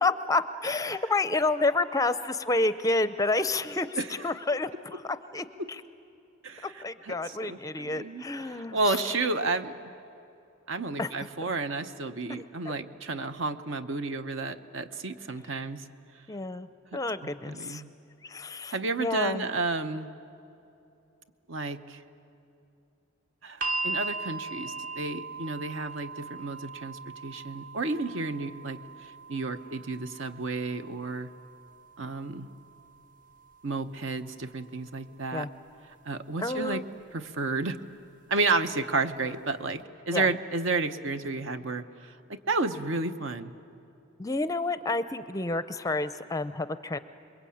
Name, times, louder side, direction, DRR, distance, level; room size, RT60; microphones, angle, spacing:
voice 1, 0.0-4.0 4.2-5.8 6.8-8.8 11.0-11.1 11.4-11.5 12.3-12.7 16.3-16.7 16.9-17.8 18.2-19.5 35.3-35.5 36.4-36.9 40.1-40.3 44.2-47.0, left 2 dB, 15° left, 12 dB, 0.5 m, -29 dB
voice 2, 4.0-4.3 5.6-5.7 6.4-9.7 10.7-15.8 16.9-17.9 18.7-20.1 21.5-22.0 23.4-28.8 29.3-31.3 32.0-32.5 33.6-35.5 36.0-36.8 37.1-37.8 38.3-41.8 42.3-43.5, right 3 dB, 65° right, 10 dB, 0.9 m, -31 dB
sound 1, 23.6-35.7 36.8-36.9, right 3 dB, 40° right, 1.0 m, -40 dB
26.5 x 22.0 x 8.6 m, 2.8 s
head